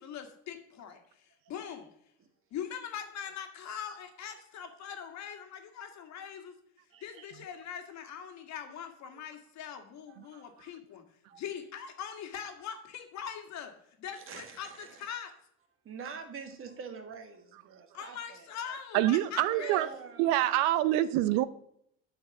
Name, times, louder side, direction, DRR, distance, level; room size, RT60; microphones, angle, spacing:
voice 1, 0.0-1.9 2.5-6.5 7.0-11.0 11.3-13.7 14.0-15.3 17.9-19.8, left 8 dB, 55° left, 5 dB, 1.8 m, -42 dB
voice 2, 6.9-7.4 9.1-9.2 10.1-10.5 11.3-11.5 14.1-15.1 15.8-18.5 19.4-20.6, right 6 dB, 40° right, 7 dB, 1.6 m, -45 dB
voice 3, 18.9-19.9 20.2-21.4, right 14 dB, 70° right, 15 dB, 0.6 m, -26 dB
8.3 x 4.6 x 7.0 m, 0.71 s
supercardioid pair, 100°, 34 cm